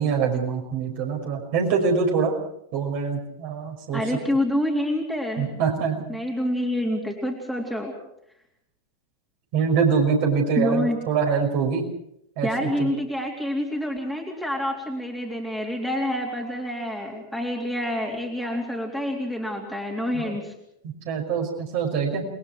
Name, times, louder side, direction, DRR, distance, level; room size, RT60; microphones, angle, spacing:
voice 1, 0.0-2.3 2.7-4.0 5.4-6.1 9.5-11.9 12.4-12.9 20.1-20.4 20.8-22.2, right 6 dB, 45° right, 2 dB, 5.7 m, -24 dB
voice 2, 3.9-5.5 6.1-8.0 10.6-11.1 12.4-20.5, left 1 dB, ahead, 0 dB, 3.6 m, -27 dB
28.5 x 21.5 x 4.8 m, 0.75 s
figure-of-eight pair, 90°, 0 cm